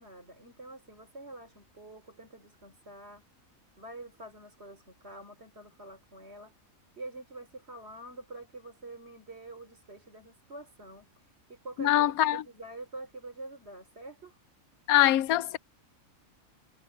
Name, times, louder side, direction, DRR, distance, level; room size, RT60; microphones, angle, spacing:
voice 1, 0.0-3.3 3.8-6.5 7.0-11.1 11.5-14.4, right 2 dB, 45° right, 3.6 m, -46 dB
voice 2, 11.8-12.4 14.9-15.6, left 13 dB, 85° left, 1.1 m, -23 dB
omnidirectional pair, 1.5 m